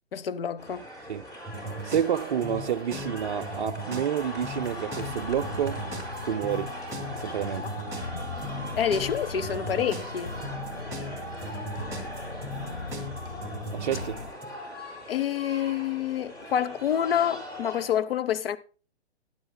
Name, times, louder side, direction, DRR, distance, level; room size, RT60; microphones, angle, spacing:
voice 1, 0.1-0.8 8.1-8.2 8.8-10.4 15.1-18.6, left 9 dB, 55° left, 1.0 m, -27 dB
sound 1, 0.6-17.9, equal, 10° left, 4.1 m, -40 dB
sound 2, 1.5-14.5, equal, 5° right, 2.5 m, -38 dB
voice 2, 1.8-5.8 6.2-6.7 7.1-7.7 13.7-14.2, right 9 dB, 45° right, 0.5 m, -29 dB
sound 3, 4.3-14.3, left 3 dB, 80° left, 2.0 m, -40 dB
20.0 x 11.0 x 2.2 m
figure-of-eight pair, 125°, 34 cm